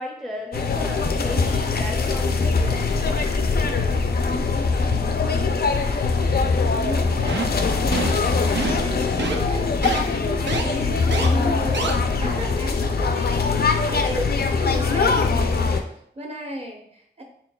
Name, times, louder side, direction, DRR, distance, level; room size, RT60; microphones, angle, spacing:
voice 1, 0.0-2.9, left 1 dB, ahead, 0 dB, 0.5 m, -34 dB
sound 1, 0.5-15.8, left 4 dB, 60° left, 0.4 m, -22 dB
voice 2, 6.8-7.4 7.8-14.3 14.6-17.2, equal, 35° right, 1 dB, 0.8 m, -34 dB
sound 2, 7.3-7.6 7.9-8.2 8.5-8.9 9.2-9.4 9.8-10.0 10.5-10.6 11.1-11.3 11.7-11.9, right 4 dB, 85° right, 0.5 m, -26 dB
4.5 x 3.5 x 2.3 m, 0.69 s
wide cardioid pair, 60°, 18 cm